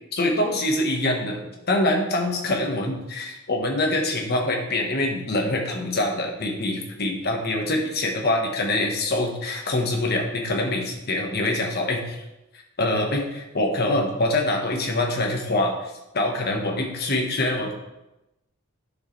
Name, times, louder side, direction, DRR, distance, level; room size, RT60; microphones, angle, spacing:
voice 1, 0.1-12.2 12.8-17.7, left 1 dB, 50° left, 1 dB, 1.4 m, -25 dB
10.5 x 6.5 x 3.3 m, 0.95 s
head